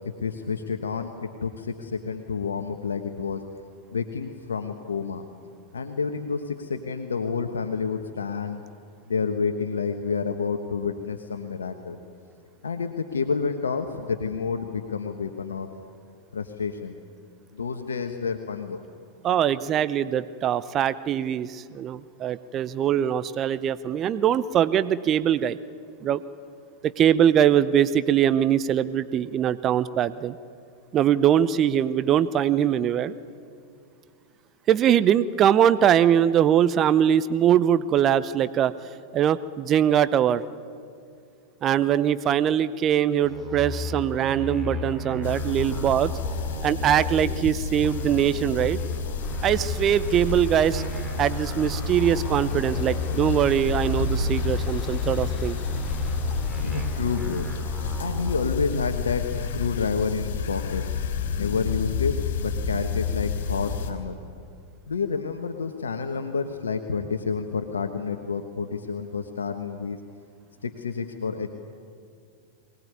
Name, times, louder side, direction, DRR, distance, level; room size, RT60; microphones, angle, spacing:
voice 1, 0.0-1.1 1.4-3.4 3.9-5.2 5.7-8.6 9.1-12.0 12.6-15.7 16.3-17.0 17.5-18.8 56.6-57.5 58.0-59.3 59.5-60.8 61.4-64.1 64.9-70.0 70.6-71.5, left 5 dB, 80° left, 6 dB, 1.3 m, -29 dB
voice 2, 19.2-25.6 26.0-26.2 26.8-30.3 30.9-33.1 34.7-38.7 39.1-40.4 41.6-46.1 46.6-48.8 49.4-50.8 51.2-55.6, right 10 dB, 35° right, 16 dB, 0.7 m, -22 dB
sound 1, 43.2-47.5 47.8-53.5 53.8-58.4, left 1 dB, 15° right, 3.7 m, -33 dB
sound 2, 45.2-63.9, left 6 dB, 65° left, 3.4 m, -30 dB
sound 3, 49.2-58.9, left 2 dB, 20° left, 7.0 m, -43 dB
23.0 x 19.0 x 9.7 m, 2.3 s
hypercardioid pair, 95°, 0 cm